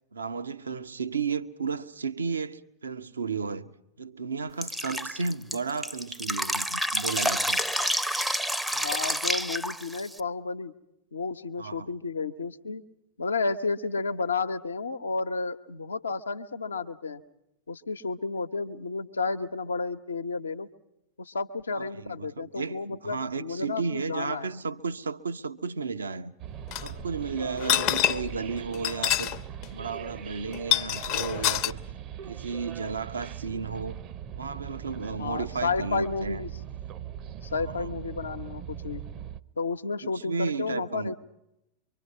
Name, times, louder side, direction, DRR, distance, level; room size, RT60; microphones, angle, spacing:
voice 1, 0.1-3.7 4.0-7.6 11.6-11.9 21.7-26.3 26.8-29.3 29.7-31.8 32.3-34.0 34.3-36.4 37.5-38.0 40.0-41.1, right 5 dB, 70° right, 0.9 m, -33 dB
Drip, 4.6-10.2, equal, ahead, 0.7 m, -29 dB
voice 2, 8.7-10.7 11.1-12.8 13.2-17.2 17.7-20.7 21.2-24.5 35.2-36.5 37.4-39.0 39.6-41.1, left 4 dB, 75° left, 1.0 m, -32 dB
sound 1, 26.4-39.4, right 9 dB, 35° right, 0.8 m, -41 dB
sound 2, 26.7-26.9 27.6-28.4 28.7-29.4 29.6-29.7 30.5-31.7, left 12 dB, 40° left, 0.8 m, -26 dB
24.5 x 24.5 x 5.4 m
figure-of-eight pair, 90°, 0 cm